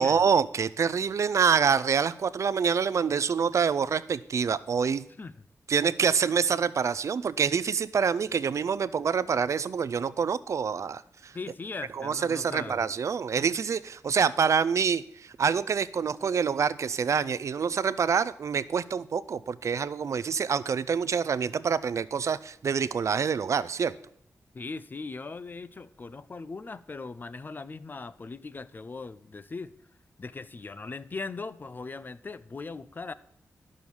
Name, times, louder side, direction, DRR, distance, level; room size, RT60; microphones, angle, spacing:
voice 1, 0.0-5.0 5.7-11.3 11.9-23.9, right 6 dB, 60° right, 17 dB, 0.4 m, -26 dB
voice 2, 11.3-12.8 24.5-29.7 30.2-33.1, left 4 dB, 35° left, 16 dB, 0.5 m, -39 dB
12.0 x 6.3 x 7.0 m, 0.68 s
wide cardioid pair, 130°, 6 cm